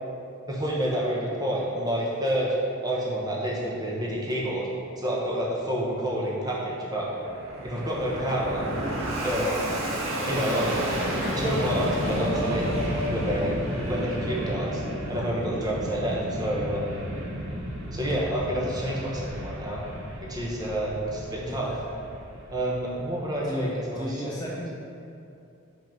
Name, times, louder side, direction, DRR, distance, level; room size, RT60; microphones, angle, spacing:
voice 1, 0.5-2.6 2.8-4.7 5.0-7.1 7.6-8.6 9.2-9.6 10.2-10.7 11.4-12.7 13.1-13.6 13.8-14.8 15.1-17.0 17.9-19.8 20.2-21.7 22.5-24.3, equal, 20° right, -4 dB, 1.1 m, -29 dB
Fixed-wing aircraft airplane, 6.7-23.3, equal, 65° right, 1.5 m, -32 dB
sound 1, 10.1-10.3 10.6-10.9 11.2-15.3, left 1 dB, 40° left, 1.0 m, -36 dB
voice 2, 13.8-14.3 21.4-21.8 23.4-24.7, equal, 20° left, -4 dB, 0.5 m, -36 dB
5.7 x 5.4 x 6.0 m, 2.7 s
head